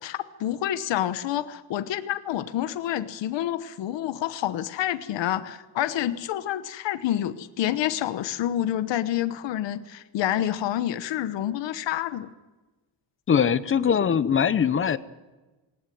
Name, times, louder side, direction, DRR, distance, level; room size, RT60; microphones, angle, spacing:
voice 1, 0.0-12.3, left 12 dB, 70° left, 11 dB, 1.1 m, -28 dB
voice 2, 13.3-15.0, left 7 dB, 30° left, 14 dB, 0.7 m, -21 dB
19.5 x 18.5 x 9.3 m, 1.2 s
cardioid pair, 180°, 45 cm